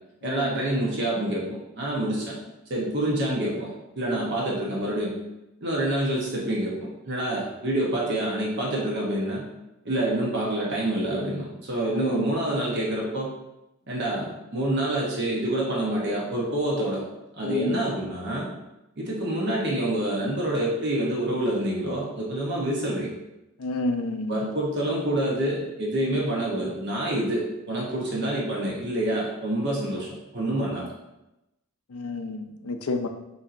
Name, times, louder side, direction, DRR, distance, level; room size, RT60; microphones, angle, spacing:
voice 1, 0.2-1.4 1.7-2.4 2.7-5.1 5.6-9.4 9.8-13.3 13.9-17.0 17.3-18.5 19.0-23.1 24.3-30.1 30.3-30.9, right 1 dB, 55° right, -4 dB, 0.9 m, -27 dB
voice 2, 11.9-12.3 17.4-17.8 22.5-22.7 23.6-24.5 26.0-26.2 31.9-33.1, left 2 dB, 85° left, 6 dB, 0.5 m, -30 dB
7.0 x 2.7 x 2.5 m, 0.93 s
head